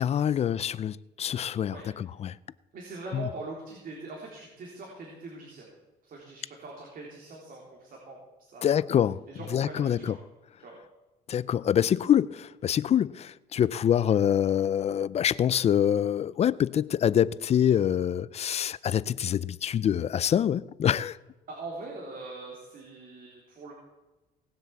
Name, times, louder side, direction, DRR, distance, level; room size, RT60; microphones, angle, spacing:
voice 1, 0.0-2.4 3.1-3.3 8.6-9.2 9.5-10.2 11.3-21.2, left 9 dB, 40° left, 0.4 m, -25 dB
voice 2, 2.7-5.7 6.0-8.8 9.3-10.2 10.6-10.7 21.5-23.7, right 3 dB, 55° right, 3.7 m, -42 dB
18.5 x 7.8 x 7.2 m
cardioid pair, 125°, 17 cm